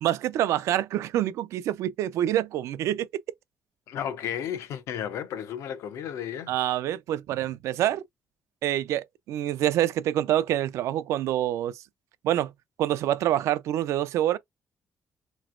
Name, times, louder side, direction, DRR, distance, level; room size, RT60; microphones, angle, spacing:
voice 1, 0.0-3.1 6.5-8.0 8.6-11.8 12.2-12.5 12.8-14.4, right 12 dB, 90° right, 0.4 m, -26 dB
voice 2, 3.9-6.5, left 9 dB, 85° left, 0.7 m, -33 dB
4.2 x 3.1 x 2.4 m
cardioid pair, 115°, 5 cm